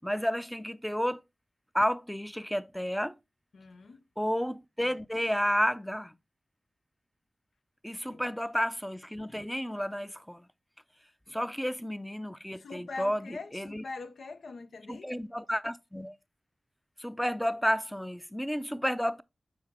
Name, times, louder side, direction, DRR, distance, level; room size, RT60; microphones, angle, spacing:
voice 1, 0.0-1.2 1.7-3.2 4.2-6.1 7.8-10.5 11.3-13.8 14.9-16.2 17.0-19.2, equal, 5° left, 0.5 m, -31 dB
voice 2, 3.5-4.0 8.0-8.2 11.3-11.4 12.5-15.1, left 3 dB, 90° left, 0.5 m, -43 dB
6.1 x 4.7 x 3.5 m
cardioid pair, 45°, 0 cm